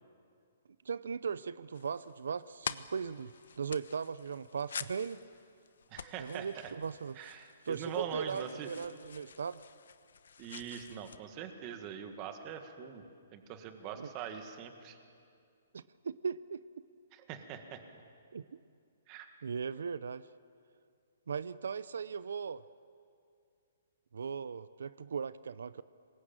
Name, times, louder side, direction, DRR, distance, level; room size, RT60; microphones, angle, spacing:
voice 1, 0.8-5.2 6.2-7.2 7.7-9.6 13.9-14.1 15.7-16.6 18.3-18.6 19.4-20.3 21.3-22.6 24.1-25.8, right 6 dB, 85° right, 16 dB, 0.6 m, -38 dB
sound 1, 1.7-11.2, left 6 dB, 75° left, 1.0 m, -47 dB
voice 2, 5.9-6.7 7.2-8.7 10.4-13.0 13.3-15.0 17.1-18.0 19.1-19.3, right 8 dB, 25° right, 6 dB, 1.8 m, -43 dB
25.0 x 21.0 x 8.9 m, 2.4 s
hypercardioid pair, 170°, 0 cm